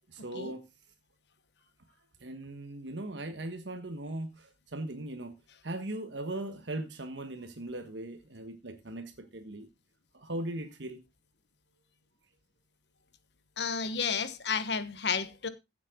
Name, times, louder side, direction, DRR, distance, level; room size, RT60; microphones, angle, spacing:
voice 1, 0.1-0.7 2.2-5.4 5.6-9.7 10.1-11.0, right 1 dB, 75° right, 1.4 m, -39 dB
voice 2, 13.6-15.5, left 6 dB, 65° left, 1.2 m, -31 dB
15.5 x 7.5 x 3.8 m
head